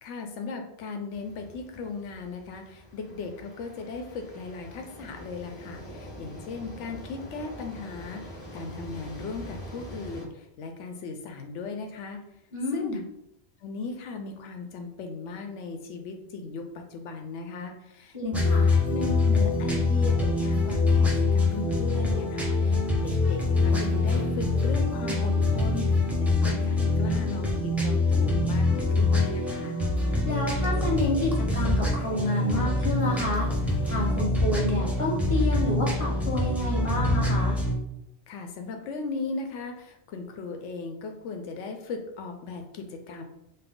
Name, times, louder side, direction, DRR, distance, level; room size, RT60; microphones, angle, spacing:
voice 1, 0.0-12.2 12.7-13.0 13.6-29.8 38.3-43.2, left 4 dB, 90° left, 4 dB, 0.9 m, -37 dB
sound 1, 1.1-10.2, equal, 55° left, 1.4 m, -44 dB
voice 2, 12.5-13.0 18.1-18.6 30.2-37.6, left 2 dB, 30° left, -6 dB, 1.4 m, -29 dB
sound 2, 18.3-37.7, left 2 dB, ahead, 0.5 m, -25 dB
5.6 x 2.0 x 3.7 m, 0.83 s
omnidirectional pair, 1.2 m